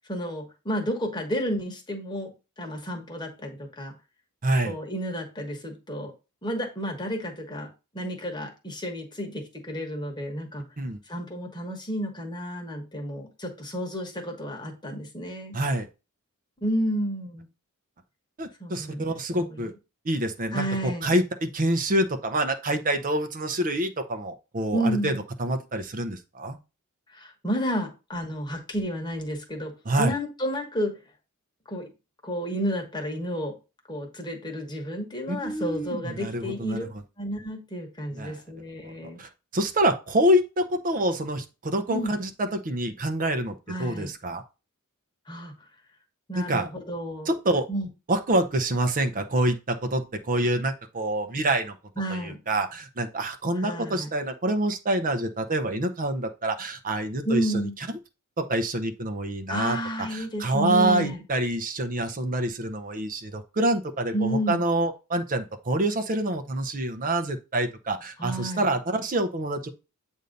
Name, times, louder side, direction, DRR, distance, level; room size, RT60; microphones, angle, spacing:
voice 1, 0.1-2.3 2.6-3.9 4.6-6.1 6.4-10.6 11.1-15.5 16.6-17.5 18.6-19.7 20.5-21.1 24.7-25.2 27.1-29.7 30.0-31.0 31.7-31.9 32.2-33.6 33.9-36.9 37.2-39.2 41.9-42.1 43.7-44.1 45.3-45.5 46.3-47.3 47.7-47.9 52.0-52.4 53.6-54.1 57.2-57.7 59.5-61.2 64.1-64.7 68.2-68.7, equal, 20° left, 2 dB, 1.2 m, -31 dB
voice 2, 4.4-4.7 10.8-11.0 15.5-15.9 18.4-19.7 20.0-26.6 29.9-30.1 35.3-36.9 38.1-38.4 39.2-44.4 46.3-46.7 47.3-47.7 48.1-51.7 52.1-57.6 58.4-59.8 60.1-69.7, right 1 dB, 40° right, 7 dB, 0.7 m, -26 dB
8.0 x 2.7 x 5.1 m, 0.29 s
head